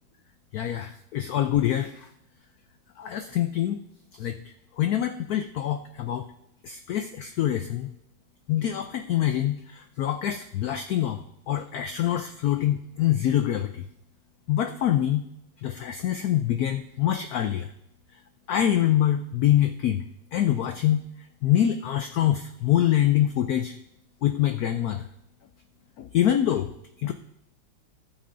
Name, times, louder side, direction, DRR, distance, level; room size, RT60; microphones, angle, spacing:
voice 1, 0.5-2.1 3.0-3.8 4.2-4.3 4.8-6.2 6.6-7.9 8.5-11.2 11.5-13.8 14.5-15.3 15.6-17.7 18.5-20.0 20.3-21.0 21.4-23.7 24.2-25.0 26.0-26.7 27.0-27.1, left 11 dB, 85° left, 8 dB, 0.8 m, -25 dB
17.5 x 8.6 x 2.6 m, 0.79 s
omnidirectional pair, 2.2 m